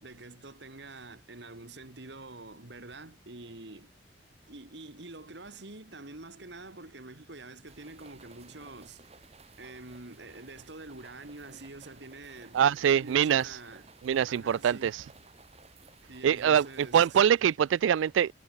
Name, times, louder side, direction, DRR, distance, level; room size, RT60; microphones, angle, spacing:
voice 1, 0.0-3.9 4.5-9.1 9.6-13.8 14.3-14.9 16.1-17.2, right 2 dB, 65° right, 2.2 m, -46 dB
sound 1, 7.7-17.2, right 3 dB, 35° right, 3.3 m, -56 dB
voice 2, 12.5-13.6 14.0-15.0 16.2-18.3, right 8 dB, 85° right, 0.3 m, -24 dB
head